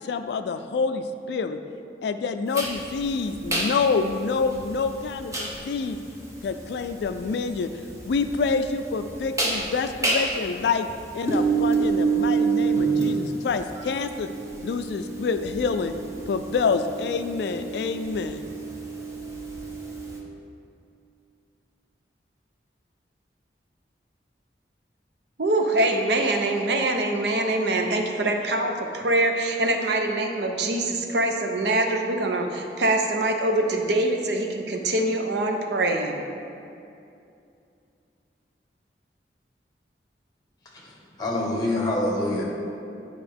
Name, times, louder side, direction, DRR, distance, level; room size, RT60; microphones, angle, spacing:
voice 1, 0.0-1.6 2.0-6.0 6.4-7.7 8.1-10.9 11.1-14.3 14.6-15.9 16.3-18.4, left 4 dB, 75° left, 9 dB, 0.3 m, -27 dB
sound 1, 2.5-20.2, right 4 dB, 15° right, 0.8 m, -29 dB
voice 2, 25.4-36.3, right 2 dB, 75° right, 4 dB, 0.7 m, -24 dB
voice 3, 40.7-42.4, left 1 dB, 25° left, -3 dB, 1.2 m, -26 dB
9.8 x 5.0 x 3.5 m, 2.6 s
head